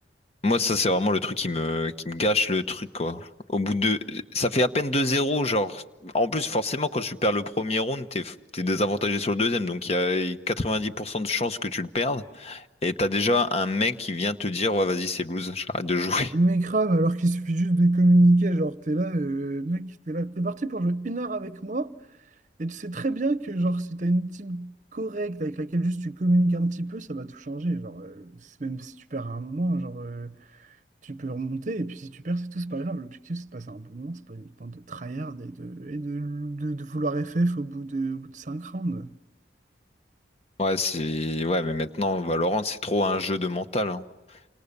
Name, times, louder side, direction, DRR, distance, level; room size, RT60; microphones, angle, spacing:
voice 1, 0.4-16.4 40.6-44.0, left 2 dB, 35° left, 1.0 m, -26 dB
voice 2, 16.3-21.9 22.6-30.4 31.0-39.1, right 2 dB, 45° right, 0.8 m, -27 dB
29.0 x 26.5 x 6.8 m
head